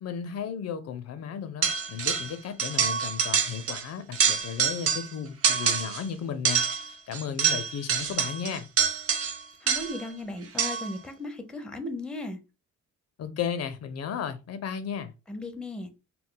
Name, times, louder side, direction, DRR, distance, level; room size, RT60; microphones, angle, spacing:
voice 1, 0.0-8.7 13.2-15.1, left 7 dB, 55° left, 0.4 m, -34 dB
sound 1, 1.6-2.3 2.6-3.8 4.1-5.1 5.4-6.0 6.5-10.1 10.6-11.0, right 7 dB, 50° right, 0.6 m, -26 dB
voice 2, 9.6-12.4 15.3-15.9, left 2 dB, 5° left, 0.5 m, -36 dB
2.2 x 2.2 x 3.7 m
cardioid pair, 90°, 30 cm